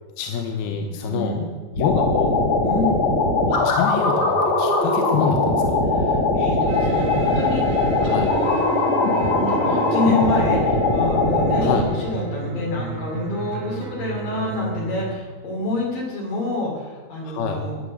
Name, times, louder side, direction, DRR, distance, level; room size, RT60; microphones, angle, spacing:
voice 1, 0.2-1.5 1.8-2.4 3.5-5.8 8.0-8.3 11.6-11.9 17.2-17.6, left 6 dB, 85° left, 5 dB, 3.0 m, -27 dB
voice 2, 0.7-1.4 2.6-3.0 5.9-8.6 9.2-17.8, left 2 dB, 65° left, -2 dB, 4.6 m, -27 dB
sound 1, 1.7-11.8, left 2 dB, 45° left, 3.6 m, -20 dB
sound 2, 6.7-15.1, right 6 dB, 80° right, 3.7 m, -34 dB
14.5 x 10.0 x 6.4 m, 1.5 s
omnidirectional pair, 4.4 m